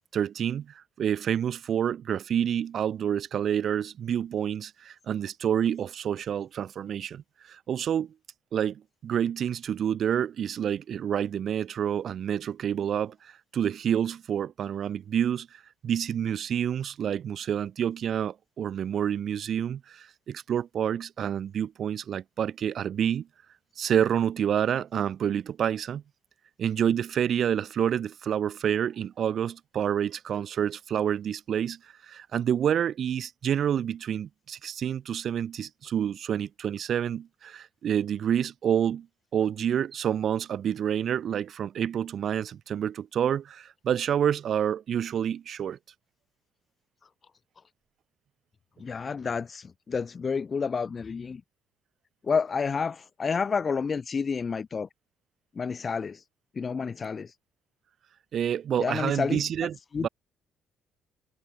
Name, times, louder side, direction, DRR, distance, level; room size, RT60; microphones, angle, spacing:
voice 1, 0.1-7.2 7.5-8.1 8.5-23.3 23.8-26.0 26.6-39.1 39.3-45.8 58.3-60.1, right 9 dB, 55° right, 5.0 m, -28 dB
voice 2, 48.8-51.4 52.2-54.9 55.6-56.2 56.6-57.3 58.8-59.4 59.9-60.1, left 5 dB, 35° left, 1.9 m, -29 dB
cardioid pair, 100°, 0 cm